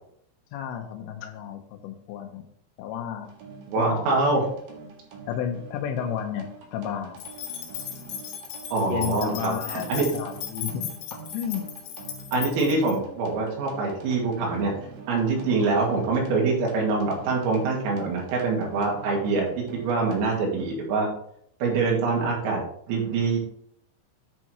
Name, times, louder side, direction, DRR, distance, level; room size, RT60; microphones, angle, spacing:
voice 1, 0.5-2.4 2.8-3.3 3.8-4.1 5.3-7.2 8.9-11.7, left 9 dB, 85° left, 4 dB, 3.5 m, -32 dB
sound 1, 3.2-20.5, right 4 dB, 60° right, 2.6 m, -45 dB
voice 2, 3.7-4.4 8.7-10.1 12.3-14.7 15.1-21.1 21.6-22.6 22.9-23.4, right 3 dB, 85° right, -2 dB, 5.0 m, -24 dB
sound 2, 7.2-12.9, left 10 dB, 65° left, 3.2 m, -37 dB
10.5 x 4.7 x 4.3 m, 0.68 s
omnidirectional pair, 5.8 m